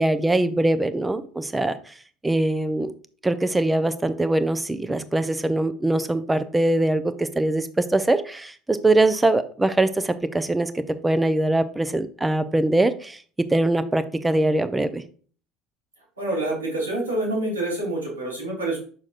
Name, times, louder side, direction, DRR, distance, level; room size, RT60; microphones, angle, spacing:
voice 1, 0.0-1.9 2.2-2.9 3.2-10.7 11.0-13.2 13.5-15.0, right 2 dB, 10° right, 12 dB, 0.7 m, -22 dB
voice 2, 16.2-18.8, right 2 dB, 85° right, -4 dB, 3.4 m, -27 dB
7.5 x 6.2 x 2.5 m, 0.43 s
figure-of-eight pair, 70°, 0 cm